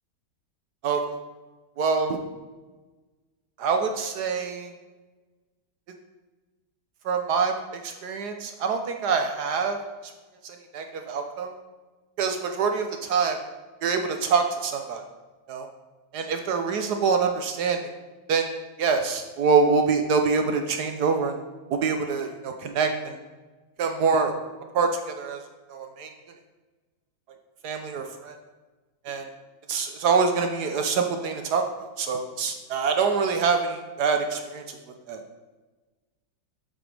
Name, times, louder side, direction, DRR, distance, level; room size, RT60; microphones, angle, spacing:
voice 1, 1.8-2.2 3.6-4.7 7.0-9.8 10.4-11.5 12.2-13.4 13.8-15.0 15.5-15.7 16.1-17.8 18.3-18.5 18.8-21.4 21.7-23.2 23.8-24.4 24.7-25.4 25.7-26.1 27.6-28.4 29.0-29.3 29.7-34.8 35.1-35.2, right 5 dB, 65° right, 5 dB, 1.1 m, -25 dB
8.8 x 7.9 x 3.3 m, 1.3 s
omnidirectional pair, 2.2 m